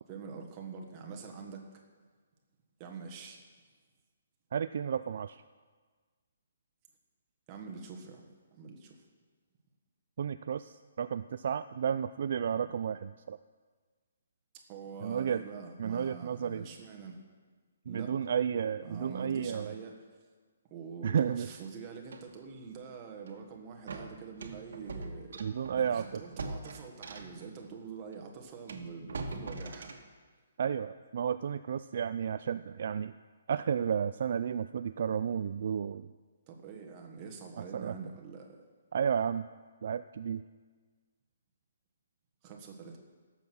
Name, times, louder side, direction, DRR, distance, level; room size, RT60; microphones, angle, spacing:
voice 1, 0.1-1.8 2.8-3.4 7.5-9.0 14.7-17.2 17.8-18.2 18.8-19.9 20.7-25.5 25.8-29.9 36.5-38.6 42.4-43.0, right 5 dB, 20° right, 2 dB, 1.4 m, -45 dB
voice 2, 4.5-5.4 10.2-13.4 15.0-15.4 15.8-16.7 17.9-19.7 21.0-21.5 25.4-26.2 30.6-33.1 33.5-36.1 37.7-37.9 38.9-39.5 39.8-40.4, right 7 dB, 50° right, 11 dB, 0.3 m, -32 dB
sound 1, 22.1-22.3 23.2-23.4 23.9-27.5 28.1-28.2 28.7-30.1, right 3 dB, 65° right, 1.4 m, -42 dB
17.0 x 7.3 x 6.1 m, 1.5 s
hypercardioid pair, 170°, 0 cm